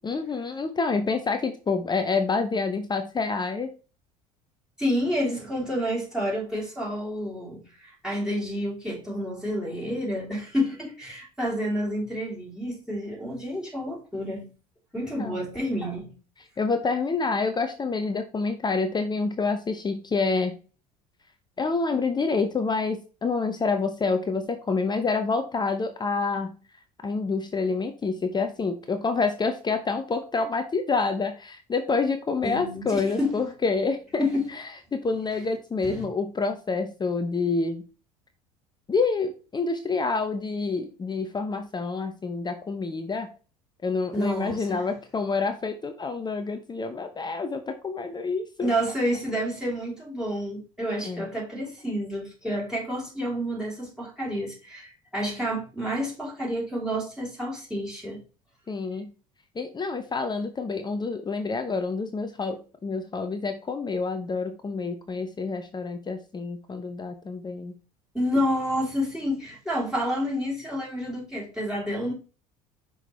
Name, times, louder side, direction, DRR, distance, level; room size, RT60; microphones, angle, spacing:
voice 1, 0.0-3.7 14.9-15.4 16.6-20.5 21.6-26.6 27.0-37.8 38.9-43.3 43.8-48.7 51.0-51.2 58.7-59.1 59.5-67.7, left 4 dB, 20° left, 0.8 m, -28 dB
voice 2, 4.8-14.5 14.9-16.1 32.4-33.4 34.2-34.5 35.8-36.0 44.1-44.8 48.6-58.2 68.1-72.1, equal, 5° right, 2.9 m, -29 dB
5.9 x 4.7 x 3.4 m
figure-of-eight pair, 65°, 20 cm